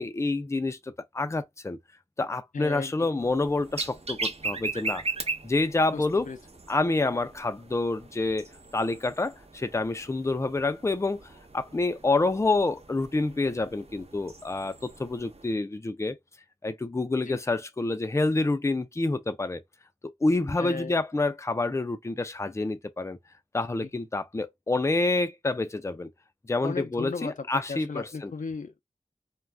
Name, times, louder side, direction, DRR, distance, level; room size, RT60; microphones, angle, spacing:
voice 1, 0.0-1.8 2.2-5.0 5.4-6.3 6.7-8.5 8.7-11.2 11.5-16.2 16.6-19.6 20.2-23.2 23.5-26.1 26.4-28.3, left 2 dB, 20° left, 0.4 m, -28 dB
voice 2, 2.5-3.1 5.9-6.4 17.3-17.4 20.6-21.0 23.8-23.9 26.6-28.8, left 4 dB, 85° left, 0.5 m, -36 dB
sound 1, 3.2-15.5, right 3 dB, 55° right, 0.8 m, -39 dB
2.4 x 2.2 x 3.3 m
wide cardioid pair, 60°, 13 cm